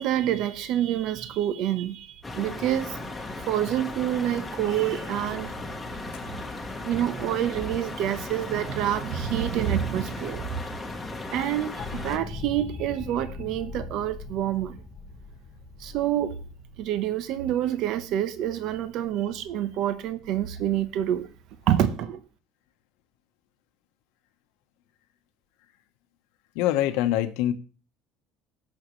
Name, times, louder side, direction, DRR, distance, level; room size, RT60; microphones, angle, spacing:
voice 1, 0.0-5.5 6.8-10.6 11.3-14.8 15.8-16.4 16.8-21.3 21.7-22.2, right 11 dB, 50° right, 1.0 m, -27 dB
sound 1, 2.2-12.2, left 2 dB, 5° left, 1.3 m, -36 dB
sound 2, 11.8-17.5, left 4 dB, 35° left, 1.4 m, -40 dB
voice 2, 26.5-27.5, left 13 dB, 80° left, 1.1 m, -24 dB
17.0 x 6.5 x 3.2 m
cardioid pair, 175°, 0 cm